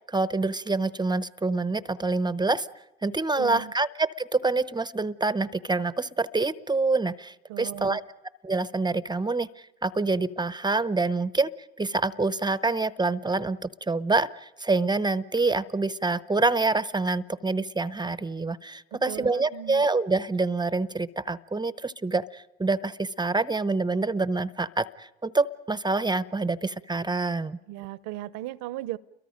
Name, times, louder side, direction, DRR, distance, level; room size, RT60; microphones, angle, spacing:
voice 1, 0.1-2.7 3.0-8.0 8.4-11.5 11.8-27.6, right 3 dB, 15° right, 15 dB, 0.8 m, -26 dB
voice 2, 3.4-3.7 7.5-8.0 18.9-19.8 27.7-29.0, right 15 dB, 70° right, 18 dB, 1.0 m, -37 dB
29.5 x 23.0 x 5.2 m, 0.95 s
hypercardioid pair, 70°, 30 cm